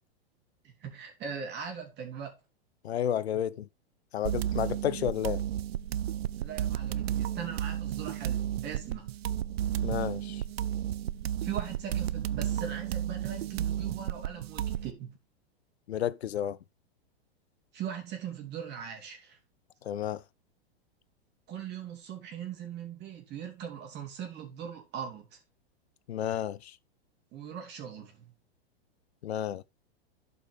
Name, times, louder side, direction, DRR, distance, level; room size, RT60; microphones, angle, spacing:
voice 1, 0.8-2.3 6.4-9.1 11.4-15.2 17.7-19.4 21.5-25.4 27.3-28.3, right 8 dB, 35° right, 3.0 m, -40 dB
voice 2, 2.8-3.7 4.1-5.4 9.8-10.4 15.9-16.6 19.9-20.2 26.1-26.7 29.2-29.6, left 10 dB, 90° left, 0.7 m, -31 dB
sound 1, 4.2-14.9, right 11 dB, 80° right, 0.6 m, -32 dB
11.5 x 5.4 x 3.4 m
hypercardioid pair, 120°, 31 cm